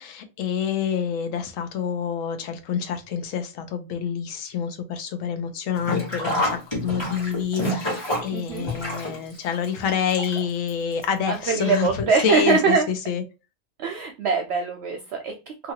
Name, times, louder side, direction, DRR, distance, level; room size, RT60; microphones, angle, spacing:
voice 1, 0.0-12.8 13.1-13.2, left 7 dB, 80° left, 1.0 m, -27 dB
Sink (filling or washing), 5.8-10.7 11.0-11.1 12.1-12.2 12.5-12.6, equal, 20° left, 1.1 m, -28 dB
voice 2, 8.3-8.7 11.3-12.9 13.8-15.7, right 5 dB, 65° right, 0.7 m, -23 dB
2.7 x 2.6 x 2.8 m
omnidirectional pair, 1.4 m